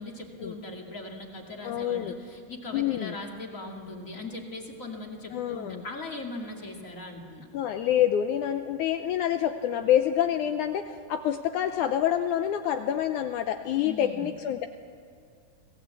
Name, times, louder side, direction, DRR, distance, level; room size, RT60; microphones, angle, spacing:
voice 1, 0.0-7.5 13.8-14.3, left 2 dB, 25° left, 1 dB, 2.0 m, -39 dB
voice 2, 1.6-2.2 2.7-3.2 5.3-5.8 7.5-14.7, left 10 dB, 85° left, 8 dB, 1.7 m, -27 dB
25.5 x 18.0 x 8.2 m, 2.3 s
omnidirectional pair, 4.4 m